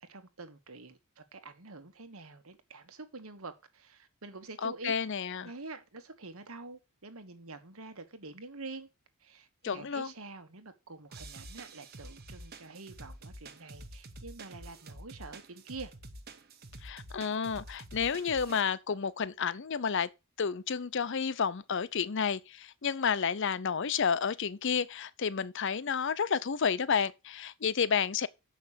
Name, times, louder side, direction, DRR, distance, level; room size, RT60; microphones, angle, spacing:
voice 1, 0.0-4.9 5.4-8.9 9.2-15.9, right 3 dB, 70° right, 1.4 m, -47 dB
voice 2, 4.6-5.5 9.6-10.1 16.8-20.1 20.4-28.3, left 6 dB, 55° left, 0.6 m, -31 dB
sound 1, 11.1-18.6, right 2 dB, 45° right, 1.2 m, -48 dB
7.3 x 5.7 x 6.7 m
head